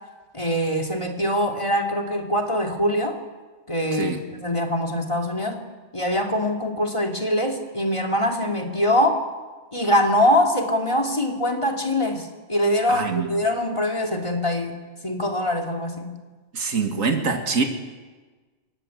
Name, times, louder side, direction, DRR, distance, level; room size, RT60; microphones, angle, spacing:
voice 1, 0.3-3.2 3.7-5.6 5.9-9.3 9.7-14.8 15.0-16.1, left 1 dB, 20° left, 2 dB, 2.6 m, -23 dB
voice 2, 3.9-4.2 12.9-13.3 16.5-17.6, right 4 dB, 75° right, 4 dB, 2.4 m, -24 dB
28.5 x 15.5 x 9.5 m, 1.3 s
omnidirectional pair, 1.4 m